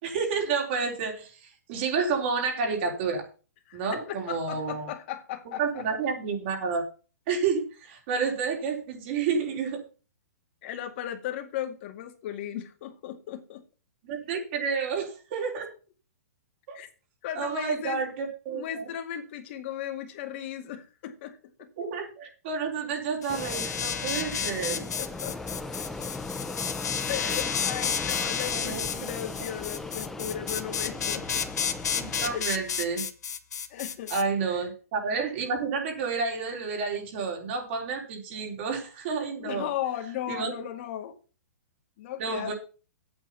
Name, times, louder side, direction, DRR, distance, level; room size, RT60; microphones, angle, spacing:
voice 1, 0.0-3.2 3.7-4.9 5.6-6.8 7.3-9.8 14.1-15.7 16.7-16.8 17.4-18.9 21.8-24.9 28.5-29.1 32.0-33.1 34.1-39.7 40.3-40.5 42.2-42.5, right 5 dB, 45° right, 3.9 m, -30 dB
voice 2, 3.7-5.8 10.6-13.6 16.7-16.9 17.2-18.0 18.5-21.7 24.3-24.5 25.0-25.6 27.1-31.5 32.3-32.7 33.7-34.1 34.5-34.6 39.4-41.2 42.0-42.5, left 11 dB, 45° left, 2.1 m, -36 dB
tuning planet, 23.2-34.2, left 7 dB, 85° left, 1.2 m, -32 dB
Fixed-wing aircraft airplane, 23.3-32.4, left 3 dB, 5° left, 0.5 m, -38 dB
8.8 x 8.6 x 5.6 m
hypercardioid pair, 155°, 9 cm